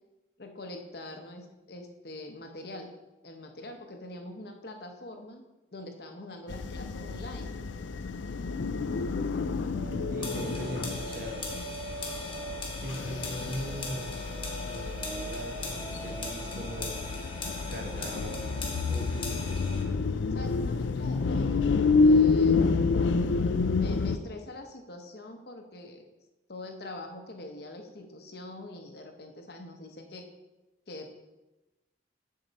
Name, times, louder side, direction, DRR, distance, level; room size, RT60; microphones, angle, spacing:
voice 1, 0.4-2.9 3.2-5.4 5.7-7.5 8.1-8.6 19.1-19.5 20.3-22.6 23.6-26.0 26.5-30.3 30.9-31.2, left 1 dB, 55° left, 4 dB, 0.9 m, -44 dB
sound 1, 6.5-24.2, left 4 dB, 75° left, 0.4 m, -29 dB
sound 2, 9.7-19.0, right 2 dB, 75° right, 1.5 m, -44 dB
voice 2, 10.1-11.5 12.8-14.2 14.6-17.1 17.7-19.6, equal, 50° right, 2 dB, 1.1 m, -40 dB
sound 3, 10.2-19.8, left 3 dB, 25° left, 1.2 m, -40 dB
7.4 x 6.7 x 4.1 m, 1.0 s
head